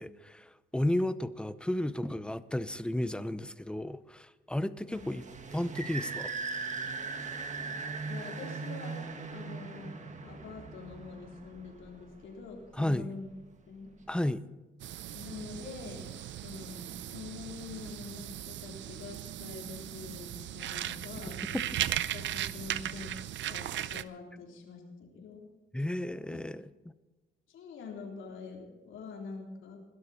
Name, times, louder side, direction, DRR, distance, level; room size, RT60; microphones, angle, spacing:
voice 1, 0.0-5.2 5.5-6.3 12.8-13.1 14.1-14.4 21.5-21.6 25.7-26.6, left 1 dB, 5° left, 0.7 m, -33 dB
sound 1, 4.9-12.2, right 4 dB, 35° right, 1.7 m, -39 dB
voice 2, 8.0-9.0 9.3-9.9 10.2-13.3 13.7-13.9 15.1-16.1 16.4-21.6 22.1-23.1 23.5-25.5 26.3-26.4 27.5-29.8, left 4 dB, 75° left, 3.5 m, -45 dB
sound 2, 14.8-24.0, right 12 dB, 70° right, 0.6 m, -37 dB
20.5 x 12.5 x 4.2 m
cardioid pair, 90°, 20 cm